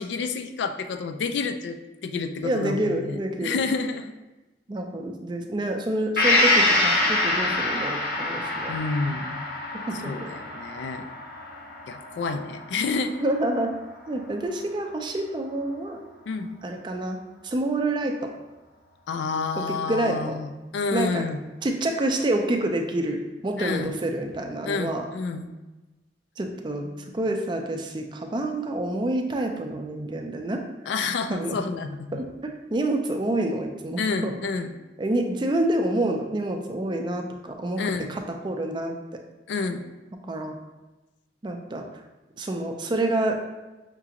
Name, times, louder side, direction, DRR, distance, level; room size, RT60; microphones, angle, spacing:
voice 1, 0.0-4.1 8.7-9.5 10.0-11.1 11.9-13.1 16.3-16.5 19.1-21.4 23.6-23.9 24.7-25.5 30.9-32.2 34.0-34.7 37.8-38.1 39.5-39.8, left 4 dB, 80° left, 8 dB, 0.3 m, -29 dB
voice 2, 2.4-3.6 4.7-8.7 9.9-10.3 13.2-13.7 14.1-16.0 16.6-17.2 17.4-18.3 19.6-20.4 20.9-21.2 21.6-23.2 23.4-25.1 26.4-30.6 31.3-31.6 32.1-34.3 35.0-37.8 38.1-38.9 40.3-40.6 41.4-41.8 42.4-43.4, right 1 dB, 25° right, 3 dB, 0.4 m, -27 dB
Gong, 6.2-13.8 14.2-14.3, left 2 dB, 55° left, 0.7 m, -26 dB
5.8 x 2.4 x 2.8 m, 1.1 s
head